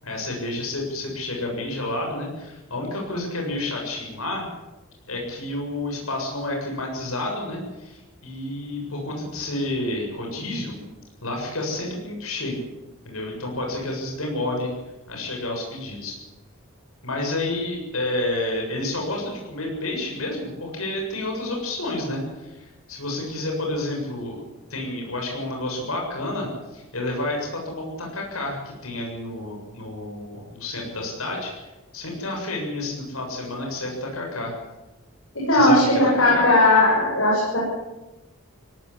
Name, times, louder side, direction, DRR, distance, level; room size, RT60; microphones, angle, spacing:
voice 1, 0.0-4.4 5.1-10.8 11.2-12.6 13.0-14.7 15.1-16.2 17.0-24.4 24.7-34.5 35.5-36.5, left 2 dB, 85° left, 0 dB, 7.3 m, -30 dB
voice 2, 35.3-37.6, left 1 dB, 70° left, -5 dB, 7.9 m, -17 dB
19.0 x 18.0 x 10.0 m, 1.1 s
head